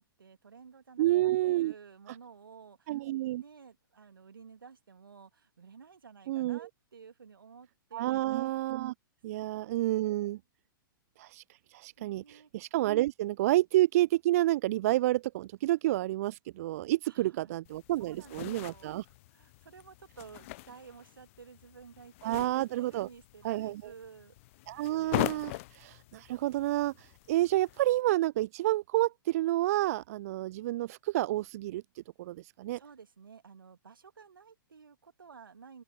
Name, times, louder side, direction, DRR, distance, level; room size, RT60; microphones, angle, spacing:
voice 1, 0.0-3.0 3.3-8.2 9.3-9.4 12.0-12.5 17.0-17.6 18.0-19.0 19.3-24.3 32.8-35.8, right 6 dB, 70° right, 2.2 m, -53 dB
voice 2, 1.0-1.7 2.9-3.4 6.3-6.7 7.9-8.9 9.2-10.4 11.2-11.4 11.7-19.0 22.2-23.1 23.4-23.8 24.7-32.8, right 15 dB, 45° right, 0.3 m, -29 dB
sound 1, 17.6-28.0, left 21 dB, 35° left, 0.4 m, -41 dB
open air
figure-of-eight pair, 110°, 12 cm